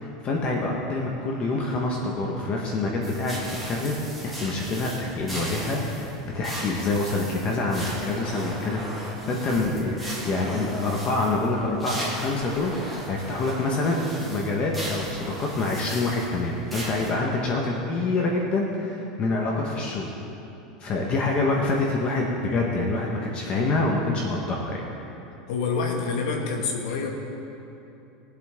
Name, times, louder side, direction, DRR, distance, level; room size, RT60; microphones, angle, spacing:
voice 1, 0.0-3.4 3.7-8.8 9.3-20.1 20.8-24.9, left 2 dB, 35° left, -1 dB, 1.5 m, -26 dB
sound 1, 3.0-17.1, right 1 dB, ahead, 2.9 m, -37 dB
voice 2, 25.5-27.1, left 4 dB, 80° left, 1 dB, 2.2 m, -27 dB
22.5 x 7.8 x 3.8 m, 2.8 s
supercardioid pair, 135°, 3 cm